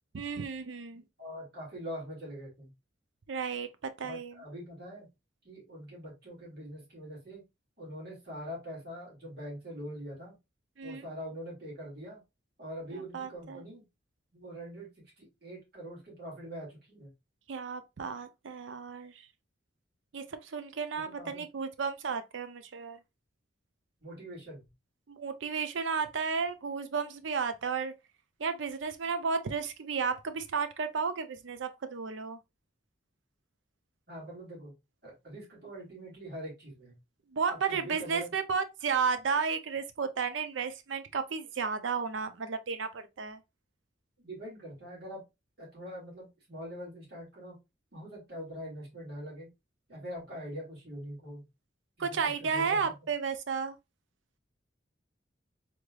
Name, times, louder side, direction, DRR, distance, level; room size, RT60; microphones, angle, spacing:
voice 1, 0.1-1.0 3.3-3.7 4.0-4.3 10.8-11.1 12.9-13.6 17.5-19.1 20.1-23.0 25.1-27.9 28.4-32.4 37.3-43.4 52.0-53.7, right 5 dB, 80° right, 0.5 m, -33 dB
voice 2, 1.2-2.7 4.0-5.1 5.4-7.4 7.8-10.4 10.8-12.2 12.6-13.8 14.3-17.1 20.9-21.5 24.0-24.7 34.1-34.7 35.0-37.0 37.5-38.3 44.2-45.2 45.6-47.6 47.9-49.5 49.9-51.4 52.0-53.0, equal, 55° right, 2.2 m, -43 dB
3.5 x 3.2 x 2.3 m
head